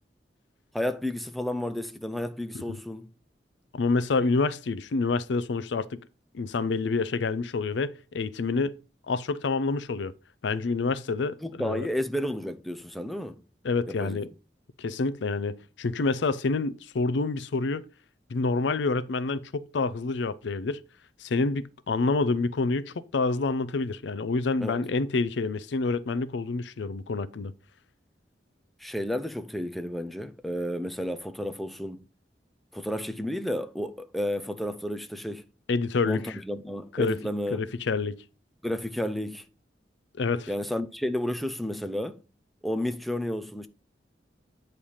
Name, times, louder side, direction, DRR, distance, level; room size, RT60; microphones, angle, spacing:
voice 1, 0.7-3.1 11.4-13.4 14.0-14.2 24.6-24.8 28.8-32.0 32.7-35.4 36.0-37.6 38.6-39.5 40.5-42.2 42.6-43.7, left 1 dB, ahead, 0.5 m, -31 dB
voice 2, 3.7-6.0 6.3-8.8 9.1-10.1 10.4-11.9 13.6-14.3 14.8-17.8 18.3-20.8 21.2-27.5 35.7-36.4 36.9-37.2 37.5-38.2 40.2-40.5, left 3 dB, 75° left, 0.5 m, -27 dB
8.6 x 3.3 x 5.5 m
head